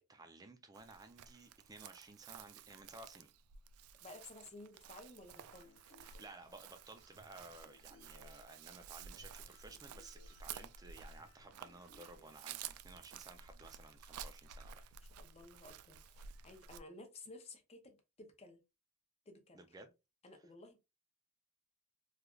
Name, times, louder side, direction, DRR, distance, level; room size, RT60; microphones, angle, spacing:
voice 1, 0.1-3.3 6.0-14.9 19.5-19.9 20.4-20.5, right 2 dB, 15° right, 0.4 m, -56 dB
Chirp tweet, 0.7-16.8, right 8 dB, 90° right, 0.3 m, -53 dB
voice 2, 4.0-5.7 15.2-18.6 19.3-19.6 20.2-20.8, left 2 dB, 30° left, 0.6 m, -55 dB
sound 1, 5.3-12.6, left 4 dB, 50° left, 1.2 m, -67 dB
3.2 x 2.4 x 2.3 m
head